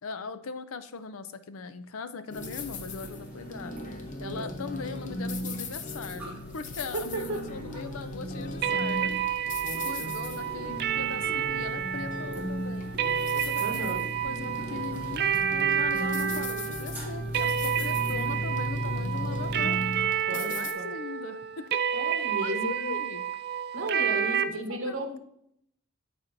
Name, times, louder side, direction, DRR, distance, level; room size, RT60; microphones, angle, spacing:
voice 1, 0.0-3.7 4.2-9.1 9.8-12.9 13.3-15.4 15.7-19.8 20.3-21.8 22.4-23.3 23.9-24.3 24.7-25.2, left 5 dB, 80° left, 12 dB, 0.5 m, -40 dB
sound 1, 2.3-20.7, left 1 dB, 40° left, 0.7 m, -38 dB
sound 2, 2.3-20.0, equal, 10° right, 1.6 m, -39 dB
voice 2, 4.2-4.6 6.9-7.4 9.6-10.3 13.6-14.1 20.3-20.9 21.9-22.9 23.7-25.2, right 2 dB, 70° right, 4 dB, 1.2 m, -35 dB
sound 3, 8.6-24.4, right 8 dB, 50° right, 0.4 m, -30 dB
13.0 x 4.3 x 2.6 m, 0.70 s
head